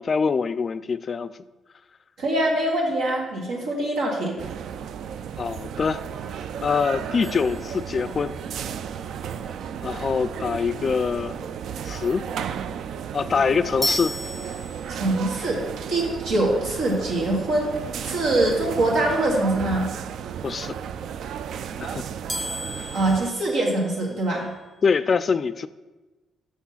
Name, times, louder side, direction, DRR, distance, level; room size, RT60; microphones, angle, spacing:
voice 1, 0.0-1.3 5.4-6.0 6.6-8.4 9.8-11.5 11.9-12.3 13.1-14.2 20.4-20.7 21.8-22.0 22.7-22.9 24.8-25.7, left 5 dB, 45° left, 14 dB, 0.3 m, -24 dB
voice 2, 2.2-4.4 14.9-15.6 15.9-17.7 18.0-19.9 22.9-24.5, right 1 dB, 90° right, -2 dB, 2.0 m, -23 dB
sound 1, 4.4-23.3, right 8 dB, 70° right, 0.3 m, -34 dB
sound 2, 7.2-8.5 13.8-15.3 22.3-24.4, left 1 dB, 5° left, 0.6 m, -34 dB
6.2 x 6.1 x 5.6 m, 1.2 s
cardioid pair, 90°, 0 cm